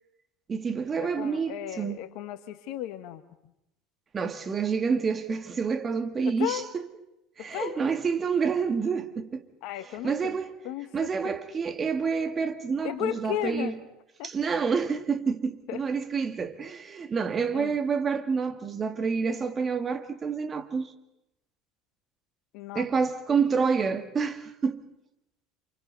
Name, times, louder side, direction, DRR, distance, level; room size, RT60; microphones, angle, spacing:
voice 1, 0.5-2.0 4.1-6.6 7.4-9.4 10.0-10.5 10.9-13.8 14.2-20.9 22.7-24.8, right 5 dB, 30° right, 2.1 m, -28 dB
voice 2, 1.0-3.2 6.2-6.7 7.4-7.8 9.6-10.4 10.6-11.4 12.8-13.7 14.2-14.3 15.7-15.8 17.5-17.8 22.5-22.8, left 11 dB, 65° left, 1.4 m, -34 dB
29.0 x 28.5 x 4.1 m
hypercardioid pair, 70°, 0 cm